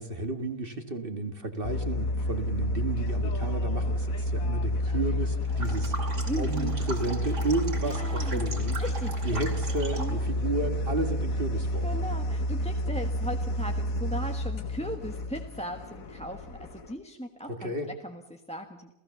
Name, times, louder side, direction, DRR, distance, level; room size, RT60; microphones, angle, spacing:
voice 1, 0.0-6.0 6.4-8.8 9.2-11.9 17.5-17.9, right 2 dB, 40° right, 6 dB, 1.8 m, -32 dB
sound 1, 1.6-16.9, equal, 90° left, 1.7 m, -30 dB
sound 2, 5.4-10.2, right 2 dB, 60° right, 3.2 m, -40 dB
voice 2, 6.3-6.7 7.8-8.5 8.8-9.2 10.0-10.3 11.8-17.7 18.0-18.9, equal, 5° left, 3 dB, 1.3 m, -37 dB
28.5 x 16.5 x 6.9 m, 0.92 s
omnidirectional pair, 1.4 m